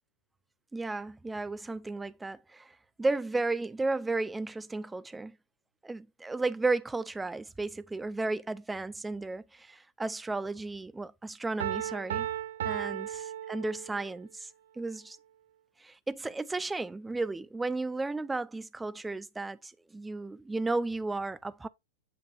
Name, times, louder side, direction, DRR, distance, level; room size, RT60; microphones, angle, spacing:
voice 1, 0.7-5.4 5.8-12.3 12.6-13.1 13.5-14.5 14.8-15.2 15.8-21.7, right 3 dB, 5° right, 0.4 m, -34 dB
Piano, 11.6-14.2, right 11 dB, 70° right, 0.4 m, -35 dB
8.8 x 5.2 x 2.5 m
hypercardioid pair, 150°, 0 cm